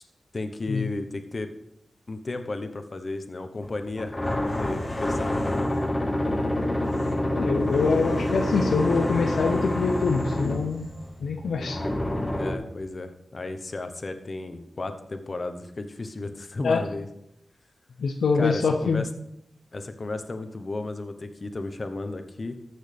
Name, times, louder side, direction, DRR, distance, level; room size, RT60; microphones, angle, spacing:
voice 1, 0.3-1.5 2.1-5.9 12.3-17.1 18.3-19.1 19.7-22.6, left 2 dB, 50° left, 8 dB, 1.1 m, -34 dB
sound 1, 3.6-12.5, left 1 dB, 25° left, 1.6 m, -27 dB
voice 2, 7.3-10.9 11.2-11.8 16.6-16.8 18.0-19.0, left 4 dB, 85° left, 4 dB, 0.7 m, -25 dB
14.5 x 6.4 x 3.5 m, 0.81 s
cardioid pair, 45°, 0 cm